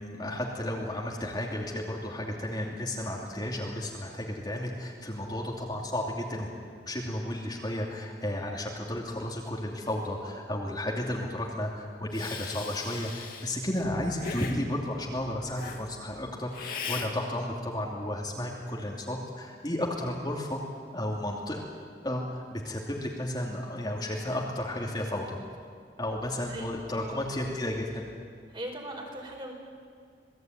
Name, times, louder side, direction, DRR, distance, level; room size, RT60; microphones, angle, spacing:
voice 1, 0.0-6.5 6.9-20.6 20.9-21.6 22.0-25.4 26.0-28.1, left 1 dB, 20° left, -2 dB, 2.7 m, -33 dB
Hiss, 12.1-13.5 14.2-14.6 15.5-15.8 16.5-17.1, left 5 dB, 50° left, 2.5 m, -38 dB
voice 2, 26.9-27.3 28.5-29.5, right 1 dB, 25° right, 1 dB, 4.9 m, -39 dB
27.5 x 19.0 x 9.4 m, 2.1 s
head